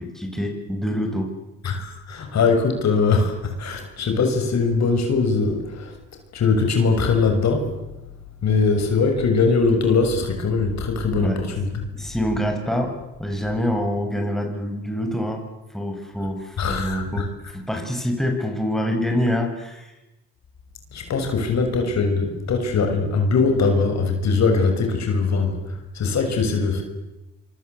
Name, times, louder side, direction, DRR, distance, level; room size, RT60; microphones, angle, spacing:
voice 1, 0.0-1.3 11.1-11.5 11.9-12.9 13.2-15.4 15.7-19.9, equal, ahead, 3 dB, 7.1 m, -26 dB
voice 2, 1.6-5.9 6.3-7.8 8.4-11.8 16.6-17.3 20.9-26.8, left 4 dB, 60° left, 5 dB, 6.8 m, -21 dB
26.0 x 25.5 x 8.4 m, 1.0 s
cardioid pair, 90°, 30 cm